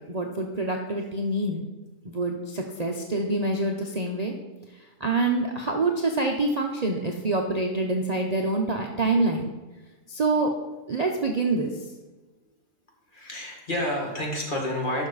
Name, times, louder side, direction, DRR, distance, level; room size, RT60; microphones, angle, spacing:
voice 1, 0.1-1.6 2.0-4.3 5.0-9.5 10.1-10.5 10.9-11.7, right 2 dB, 35° right, 0 dB, 0.7 m, -26 dB
voice 2, 13.1-15.1, left 1 dB, 40° left, -1 dB, 2.0 m, -29 dB
11.0 x 6.3 x 4.0 m, 1.2 s
omnidirectional pair, 1.4 m